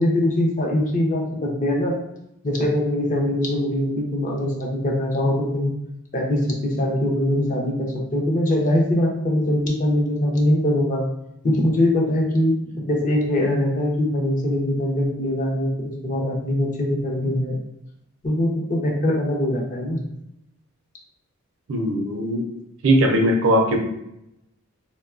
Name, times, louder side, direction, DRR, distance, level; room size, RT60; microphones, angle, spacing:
voice 1, 0.0-1.9 2.4-5.7 6.1-11.0 11.4-12.5 12.8-17.6 18.2-20.0, left 1 dB, 35° left, -1 dB, 0.5 m, -22 dB
voice 2, 21.7-22.4 22.8-23.8, right 1 dB, 65° right, 3 dB, 0.5 m, -19 dB
2.9 x 2.2 x 2.3 m, 0.82 s
head